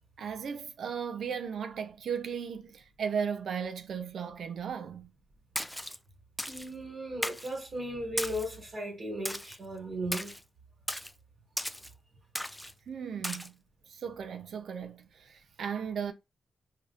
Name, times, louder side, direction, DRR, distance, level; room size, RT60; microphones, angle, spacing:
voice 1, 0.2-5.1 12.9-13.5 13.9-16.1, right 7 dB, 70° right, 0.5 m, -36 dB
Splash splatter, 5.6-6.0 6.4-6.7 7.2-7.5 8.2-8.6 9.3-9.6 10.1-10.4 10.9-11.1 11.6-11.9 12.4-12.7 13.2-13.5, equal, 5° left, 0.3 m, -36 dB
voice 2, 6.5-10.3, equal, 40° right, 1.6 m, -36 dB
4.9 x 2.8 x 2.4 m
wide cardioid pair, 135°, 0 cm